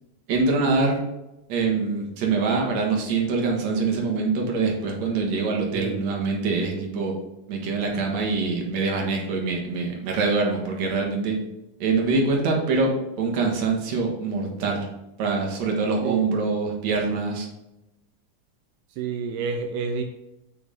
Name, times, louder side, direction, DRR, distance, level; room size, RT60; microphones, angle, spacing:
voice 1, 0.3-1.0 1.5-7.1 7.5-11.4 11.8-12.9 13.2-14.9 15.2-17.5, right 4 dB, 65° right, 0 dB, 2.7 m, -24 dB
voice 2, 19.0-20.0, right 5 dB, 85° right, 4 dB, 2.1 m, -29 dB
7.3 x 6.0 x 3.7 m, 0.92 s
omnidirectional pair, 3.5 m